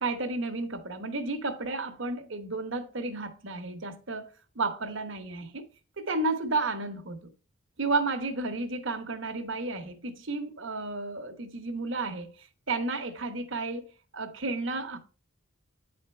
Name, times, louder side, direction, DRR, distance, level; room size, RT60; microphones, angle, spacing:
voice 1, 0.0-5.7 6.0-7.2 7.8-13.9 14.1-15.0, right 3 dB, 60° right, 1.1 m, -32 dB
9.2 x 4.3 x 4.3 m
head